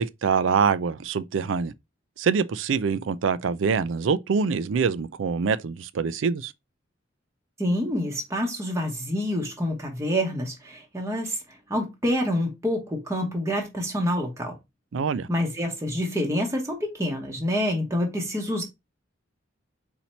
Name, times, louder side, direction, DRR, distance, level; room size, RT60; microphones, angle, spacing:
voice 1, 0.0-1.7 2.2-6.5 14.9-15.3, right 5 dB, 75° right, 0.4 m, -25 dB
voice 2, 7.6-11.4 11.7-14.6 15.3-18.6, equal, 15° right, 0.9 m, -27 dB
4.3 x 2.8 x 4.2 m
head